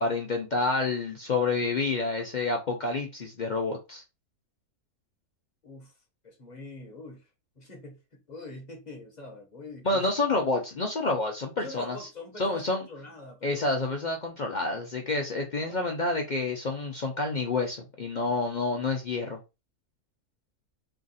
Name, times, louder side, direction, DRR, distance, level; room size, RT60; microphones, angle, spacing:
voice 1, 0.0-4.0 9.8-12.1 12.4-12.8 13.4-19.4, left 3 dB, 55° left, 0.5 m, -28 dB
voice 2, 5.6-5.9 6.2-7.3 7.6-10.1 11.6-13.7 15.7-15.8, left 2 dB, 35° left, 0.9 m, -44 dB
3.4 x 2.5 x 4.0 m
omnidirectional pair, 1.6 m